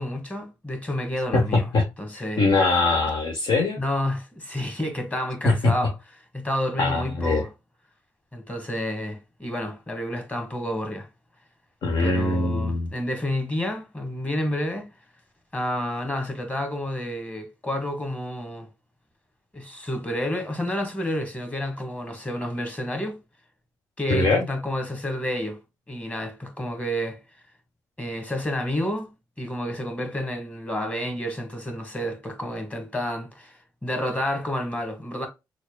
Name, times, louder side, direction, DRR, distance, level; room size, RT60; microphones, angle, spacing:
voice 1, 0.0-1.7 2.0-2.5 3.8-5.9 6.3-7.5 8.3-11.1 12.0-14.9 15.5-18.7 19.5-23.2 24.0-25.6 25.9-27.2 28.0-33.5 33.8-35.3, left 1 dB, 15° left, 1.6 m, -30 dB
voice 2, 1.3-1.8 2.4-3.8 5.4-5.8 6.8-7.4 11.8-12.9 24.1-24.4, left 3 dB, 55° left, 1.0 m, -22 dB
6.2 x 2.3 x 2.2 m
figure-of-eight pair, 40°, 9 cm